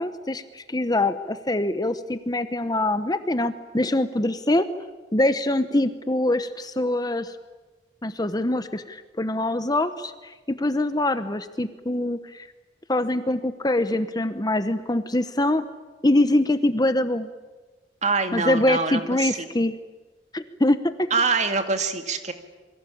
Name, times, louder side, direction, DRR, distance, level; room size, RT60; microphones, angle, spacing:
voice 1, 0.0-4.7 5.1-7.3 8.0-12.5 12.9-15.6 16.0-17.3 18.3-19.7 20.3-21.1, left 1 dB, 20° left, 11 dB, 1.0 m, -24 dB
voice 2, 18.0-19.3 21.1-22.3, right 4 dB, 40° right, 7 dB, 2.3 m, -24 dB
28.0 x 23.5 x 8.6 m, 1.2 s
head